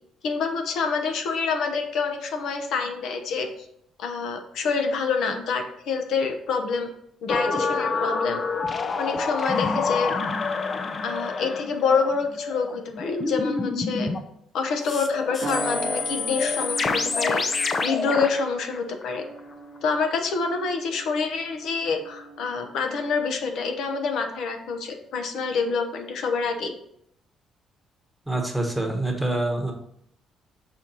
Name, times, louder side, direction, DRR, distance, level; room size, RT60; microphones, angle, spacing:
voice 1, 0.2-3.5 4.0-6.9 7.2-8.4 9.0-10.1 11.0-14.1 14.5-17.4 17.8-19.3 19.8-26.7, left 5 dB, 70° left, 5 dB, 0.8 m, -27 dB
sound 1, 7.3-14.2 14.9-19.4 19.8-19.9, left 4 dB, 30° left, 0.4 m, -27 dB
sound 2, 15.4-24.3 24.7-25.0, right 4 dB, 45° right, 0.7 m, -40 dB
voice 2, 28.3-29.7, right 2 dB, 5° right, 1 dB, 1.0 m, -26 dB
6.1 x 4.2 x 4.0 m, 0.73 s
cardioid pair, 140°, 0 cm